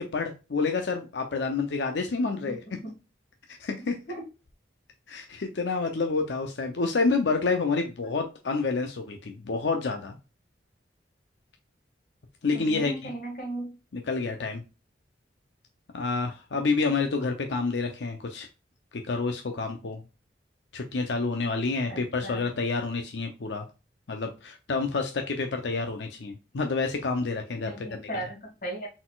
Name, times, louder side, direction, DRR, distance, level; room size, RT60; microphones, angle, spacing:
voice 1, 0.0-2.6 3.6-4.0 5.1-10.2 12.4-13.1 13.9-14.6 15.9-18.5 18.9-20.0 20.7-23.6 24.1-28.1, left 4 dB, 75° left, 5 dB, 0.6 m, -28 dB
voice 2, 12.5-13.7 21.9-22.5 27.7-28.9, right 1 dB, 50° left, -3 dB, 1.9 m, -36 dB
4.1 x 3.9 x 2.3 m, 0.30 s
head